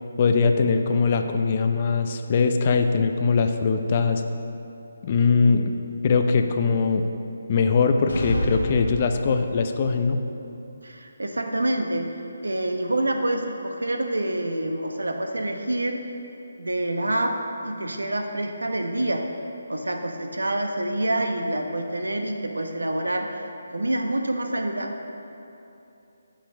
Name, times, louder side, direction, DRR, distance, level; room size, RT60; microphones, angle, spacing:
voice 1, 0.2-4.2 5.0-5.8 6.0-7.1 7.5-10.2, left 4 dB, 35° left, 6 dB, 0.6 m, -21 dB
sound 1, 8.1-9.7, left 1 dB, 90° left, 2.1 m, -29 dB
voice 2, 10.8-12.1 12.4-16.0 16.6-19.3 19.7-25.0, right 1 dB, 85° right, 4 dB, 1.0 m, -27 dB
8.5 x 7.8 x 5.1 m, 2.8 s
figure-of-eight pair, 150°, 0 cm